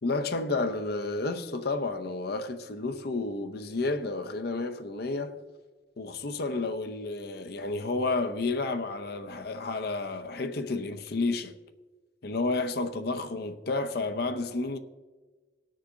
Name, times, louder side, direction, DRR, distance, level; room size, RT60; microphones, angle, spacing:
voice 1, 0.0-5.4 6.0-11.6 12.2-14.8, left 3 dB, 60° left, 0.7 m, -31 dB
19.0 x 6.5 x 3.8 m
head